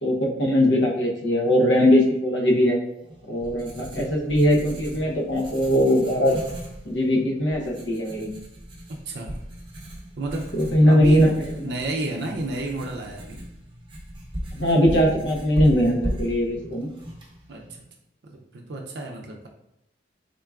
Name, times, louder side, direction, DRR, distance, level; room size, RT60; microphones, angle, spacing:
voice 1, 0.0-2.8 3.3-6.4 6.8-8.3 10.5-11.3 14.5-16.9, equal, 90° left, -1 dB, 0.7 m, -20 dB
Writing, 3.0-17.8, equal, 30° right, 0.7 m, -37 dB
voice 2, 8.9-9.4 10.2-10.5 10.9-13.4 17.5-17.8 18.2-19.5, right 2 dB, 70° right, 1 dB, 0.4 m, -31 dB
3.7 x 3.5 x 2.3 m, 0.84 s
head